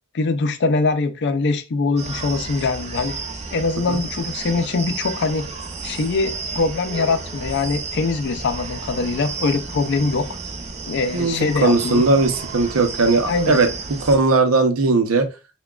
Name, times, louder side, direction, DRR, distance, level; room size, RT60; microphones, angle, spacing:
voice 1, 0.1-3.2 3.5-5.5 5.8-10.3 10.9-12.0 13.3-13.6, left 3 dB, 55° left, 0.5 m, -22 dB
sound 1, 2.0-14.2, right 4 dB, 30° right, 0.6 m, -32 dB
voice 2, 11.1-13.7 14.0-15.3, right 3 dB, 75° right, 0.7 m, -18 dB
5.8 x 2.2 x 2.3 m
head